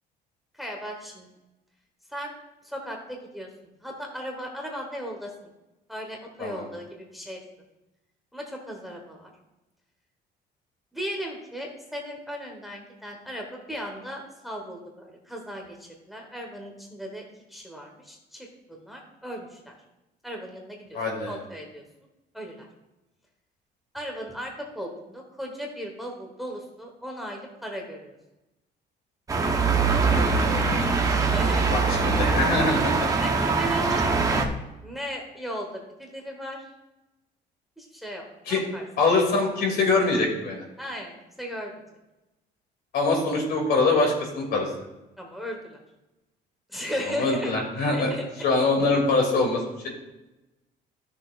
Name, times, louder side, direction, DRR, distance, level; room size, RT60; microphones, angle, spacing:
voice 1, 0.5-1.3 2.1-2.3 2.6-3.5 3.8-5.3 5.9-7.4 8.3-9.3 10.9-19.7 20.2-21.0 21.3-21.8 22.3-22.7 23.9-28.2 31.0-31.7 33.1-34.1 34.8-36.7 37.8-38.8 40.8-41.8 45.2-45.8 46.7-47.5 47.9-48.2, equal, ahead, 0 dB, 1.2 m, -36 dB
voice 2, 20.9-21.4 30.0-31.2 31.7-33.1 38.5-38.6 39.0-40.6 42.9-44.7 47.2-48.1 48.4-49.9, left 3 dB, 65° left, 1 dB, 2.5 m, -24 dB
sound 1, 29.3-34.5, right 4 dB, 20° right, 0.9 m, -23 dB
13.5 x 6.6 x 2.4 m, 0.99 s
cardioid pair, 145°, 18 cm